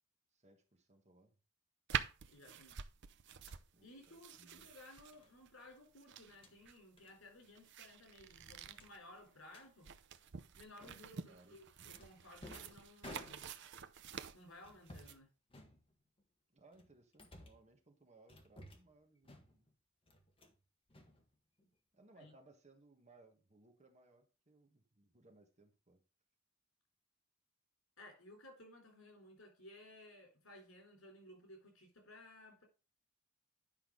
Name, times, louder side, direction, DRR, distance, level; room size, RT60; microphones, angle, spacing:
voice 1, 0.3-1.4 3.7-4.7 11.2-11.6 16.5-19.7 21.9-26.0, right 2 dB, 35° right, 1.5 m, -65 dB
sound 1, 1.9-15.2, right 7 dB, 60° right, 0.6 m, -48 dB
voice 2, 2.3-2.8 3.8-9.9 10.6-13.4 14.3-15.3 22.2-22.3 28.0-32.6, left 1 dB, 80° left, 3.8 m, -58 dB
sound 2, 3.3-3.6 5.1-5.3 6.2-6.6 7.0-7.2 7.4-7.7 7.9-8.0 8.7-9.7 10.8-11.2 11.9-13.8 14.6-15.2 15.5-16.2 16.7-17.7 18.3-18.9 19.2-19.7 20.1-20.6 20.9-21.7, left 1 dB, 25° left, 1.6 m, -57 dB
10.5 x 5.6 x 3.9 m
head